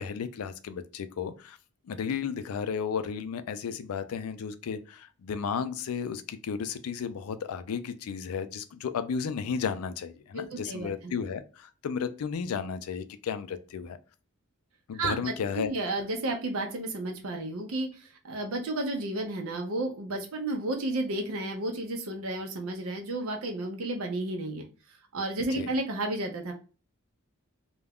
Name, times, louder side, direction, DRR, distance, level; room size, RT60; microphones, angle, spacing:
voice 1, 0.0-1.6 1.9-14.0 14.9-15.7 25.5-25.7, left 6 dB, 90° left, 0.4 m, -33 dB
voice 2, 10.3-11.1 14.9-24.7 25.1-26.5, right 2 dB, 80° right, 0.6 m, -32 dB
2.3 x 2.1 x 3.4 m
head